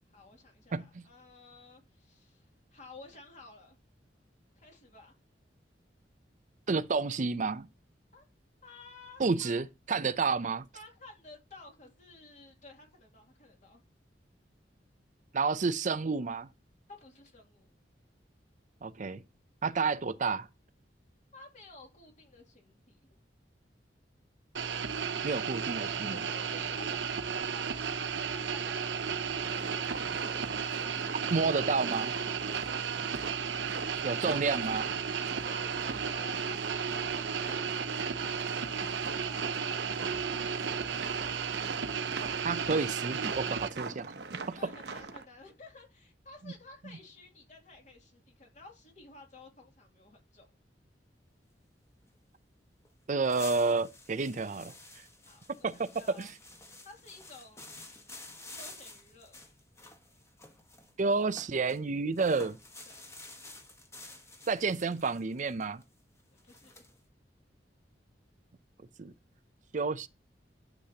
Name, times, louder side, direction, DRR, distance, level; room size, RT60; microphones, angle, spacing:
voice 1, 0.1-3.8 4.6-5.1 8.1-8.2 8.6-9.6 10.7-13.8 17.0-17.7 21.3-23.0 25.3-25.5 25.8-27.9 28.3-30.6 34.2-34.4 35.4-40.0 40.4-41.0 44.5-50.5 54.7-54.8 55.3-56.3 56.8-58.1 58.5-59.4 62.9-63.0 66.4-66.8, left 3 dB, 45° left, 2.6 m, -53 dB
voice 2, 0.7-1.0 6.7-7.7 9.2-10.6 15.3-16.5 18.8-19.2 19.6-20.5 25.2-26.2 31.3-32.1 34.0-34.9 42.4-44.1 44.5-44.6 53.1-54.7 55.6-56.3 61.0-62.6 64.5-65.8 69.0-69.1 69.7-70.1, right 4 dB, 45° right, 0.5 m, -30 dB
sound 1, 24.5-43.7, right 6 dB, 90° right, 0.8 m, -34 dB
sound 2, 29.4-45.3, right 4 dB, 65° right, 1.0 m, -43 dB
sound 3, 52.8-52.9 53.2-61.8 62.1-67.0, left 2 dB, 15° left, 1.4 m, -50 dB
11.5 x 7.2 x 2.9 m
head